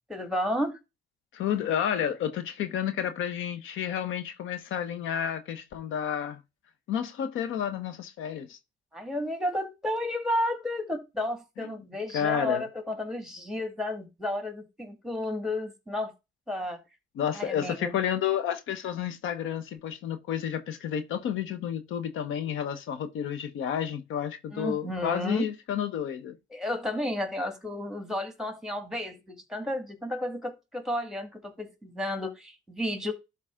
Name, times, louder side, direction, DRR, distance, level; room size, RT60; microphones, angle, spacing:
voice 1, 0.1-0.8 8.9-16.1 16.5-16.8 17.3-18.0 24.5-25.5 26.5-33.1, left 1 dB, 5° right, 2.1 m, -32 dB
voice 2, 1.3-6.4 6.9-8.6 11.6-11.7 12.1-12.6 17.1-26.4, left 9 dB, 85° left, 1.1 m, -31 dB
12.0 x 4.1 x 3.7 m
cardioid pair, 90°, 20 cm